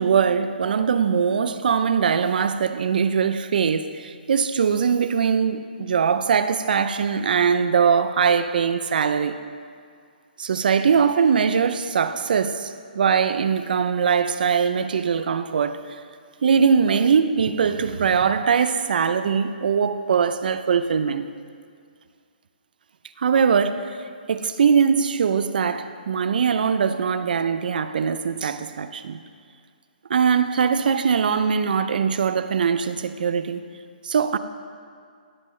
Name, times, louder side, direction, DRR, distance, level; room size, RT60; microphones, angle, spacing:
voice 1, 0.0-9.4 10.4-15.9 16.4-21.3 23.2-24.0 24.3-29.2 30.1-33.6 34.0-34.4, right 6 dB, 60° right, 0.5 m, -21 dB
16.5 x 7.4 x 3.2 m
hypercardioid pair, 155°, 5 cm